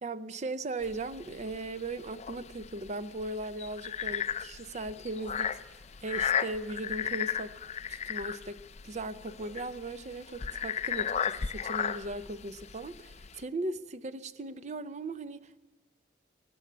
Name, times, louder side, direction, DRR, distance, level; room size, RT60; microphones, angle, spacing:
voice 1, 0.0-7.6 7.9-15.7, right 2 dB, 40° right, 0.5 m, -38 dB
sound 1, 0.8-13.4, left 8 dB, 35° left, 0.5 m, -35 dB
20.5 x 7.1 x 8.4 m
head